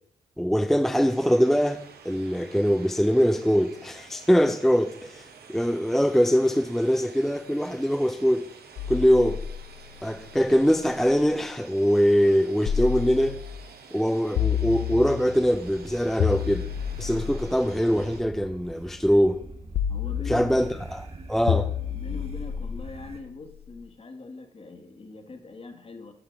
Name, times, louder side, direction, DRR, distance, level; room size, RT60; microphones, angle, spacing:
voice 1, 0.4-8.5 8.9-9.4 10.0-13.4 13.9-16.7 17.0-19.4 20.3-21.7, equal, ahead, 0.4 m, -23 dB
sound 1, 0.9-18.2, right 5 dB, 80° right, 1.1 m, -49 dB
sound 2, 8.8-11.5 12.6-13.7 14.4-15.5 16.2-18.5 19.7-20.8 21.5-23.6, left 9 dB, 85° left, 0.4 m, -31 dB
sound 3, 15.4-23.2, right 2 dB, 35° right, 1.6 m, -44 dB
voice 2, 19.9-20.8 21.9-26.1, left 3 dB, 35° left, 1.3 m, -42 dB
11.0 x 4.3 x 5.2 m
cardioid pair, 85°, 16 cm